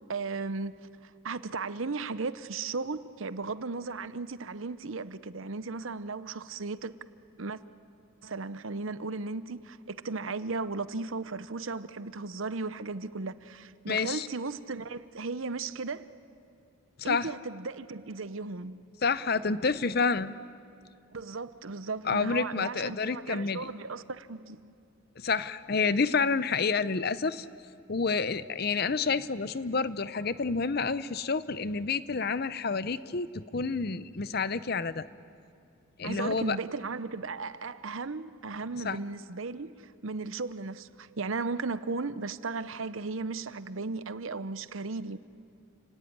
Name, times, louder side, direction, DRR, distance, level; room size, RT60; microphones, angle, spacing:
voice 1, 0.1-6.9 7.4-7.6 8.2-16.1 17.0-18.8 21.1-24.7 36.0-45.2, right 3 dB, 75° right, 0.8 m, -36 dB
voice 2, 13.9-14.3 17.0-17.3 19.0-20.3 22.1-23.7 25.2-27.5 27.9-35.1 36.0-36.6 38.8-39.0, left 4 dB, 50° left, 0.7 m, -29 dB
29.5 x 18.0 x 9.7 m
head